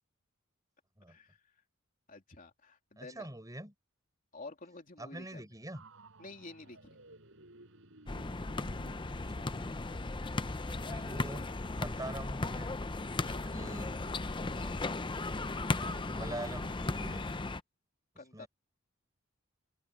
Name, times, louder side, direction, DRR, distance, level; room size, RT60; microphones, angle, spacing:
voice 1, 1.1-1.5 2.1-3.3 4.3-5.5 6.2-7.0 13.3-14.5 18.2-18.5, left 3 dB, 40° left, 3.1 m, -50 dB
voice 2, 3.0-3.7 5.0-5.8 9.1-9.8 10.6-11.4 11.8-12.7 13.2-13.9 14.5-14.8 15.6-17.2 18.3-18.5, right 1 dB, 15° right, 4.9 m, -45 dB
sound 1, 5.7-13.2, right 2 dB, 65° right, 6.4 m, -60 dB
sound 2, 8.1-17.6, left 2 dB, 25° left, 0.6 m, -36 dB
head